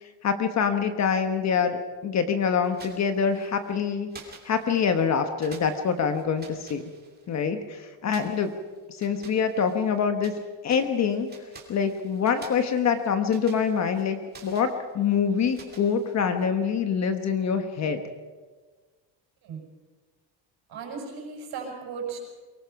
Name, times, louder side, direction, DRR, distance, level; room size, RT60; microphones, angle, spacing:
voice 1, 0.0-4.1 4.4-6.8 7.3-8.5 8.9-10.3 10.6-11.3 11.7-18.0, left 6 dB, 35° left, 8 dB, 1.1 m, -25 dB
sound 1, 2.6-3.7 4.1-5.1 5.4-7.5 8.1-10.4 10.7-16.5, right 5 dB, 20° right, 2.9 m, -50 dB
voice 2, 20.7-22.2, right 5 dB, 50° right, 1 dB, 6.6 m, -36 dB
23.5 x 19.0 x 5.8 m, 1.4 s
cardioid pair, 175°, 47 cm